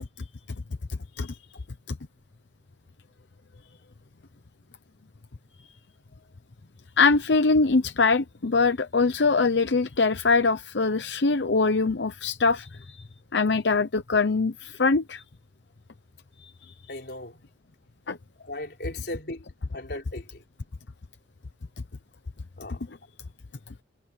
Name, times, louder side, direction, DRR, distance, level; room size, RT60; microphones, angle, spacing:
voice 1, 7.0-13.0 13.3-15.2 16.4-16.7 18.1-18.2, left 4 dB, 85° left, 0.8 m, -23 dB
voice 2, 16.9-17.4 18.4-19.4 19.7-20.4 22.6-22.8, left 1 dB, 65° left, 4.7 m, -37 dB
head